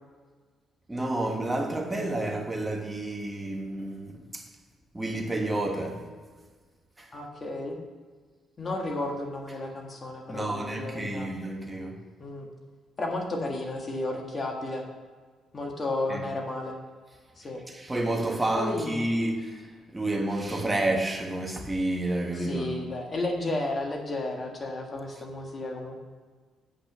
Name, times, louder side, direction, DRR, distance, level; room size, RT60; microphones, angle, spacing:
voice 1, 0.9-4.5 4.9-6.1 7.0-7.1 10.3-12.0 16.1-16.2 17.7-22.8, right 1 dB, 15° right, 1.4 m, -30 dB
voice 2, 7.1-7.8 8.6-11.3 12.2-12.5 13.0-14.9 15.5-16.8 17.4-17.6 18.6-19.0 22.4-26.0, left 2 dB, 35° left, 1.8 m, -32 dB
8.5 x 5.8 x 6.1 m
cardioid pair, 90°, 0 cm